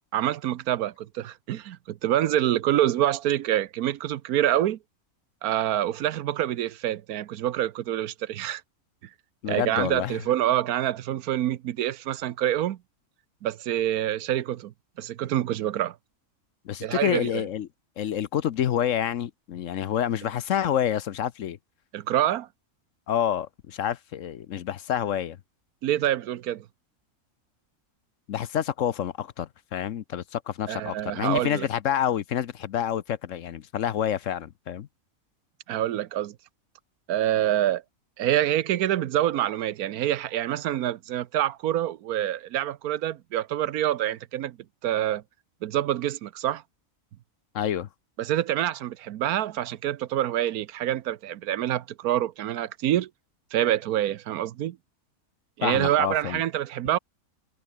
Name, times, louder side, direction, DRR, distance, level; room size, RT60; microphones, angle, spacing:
voice 1, 0.1-4.8 5.4-8.6 9.5-12.8 13.4-14.7 15.0-16.0 16.8-17.4 21.9-22.5 25.8-26.6 30.7-31.7 35.7-36.4 37.1-37.8 38.2-44.6 44.8-45.2 45.6-46.6 48.2-53.1 53.5-54.8 55.6-57.0, right 12 dB, 80° right, 1.2 m, -26 dB
voice 2, 9.4-10.2 16.6-17.7 18.0-21.6 23.1-25.4 28.3-34.9 47.5-47.9 55.6-56.4, left 10 dB, 65° left, 1.1 m, -28 dB
omnidirectional pair, 1.6 m